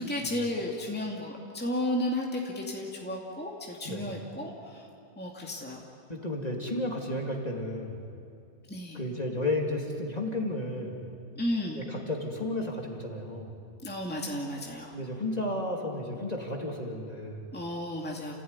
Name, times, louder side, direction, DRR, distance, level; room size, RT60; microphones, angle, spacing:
voice 1, 0.0-4.9 5.2-5.8 8.7-9.0 11.4-11.8 13.8-15.0 17.5-18.4, left 1 dB, 5° left, -1 dB, 2.3 m, -33 dB
voice 2, 6.1-8.0 8.9-11.0 11.7-13.5 14.9-17.4, left 1 dB, 30° left, 0 dB, 2.7 m, -33 dB
30.0 x 16.0 x 9.7 m, 2.4 s
omnidirectional pair, 1.4 m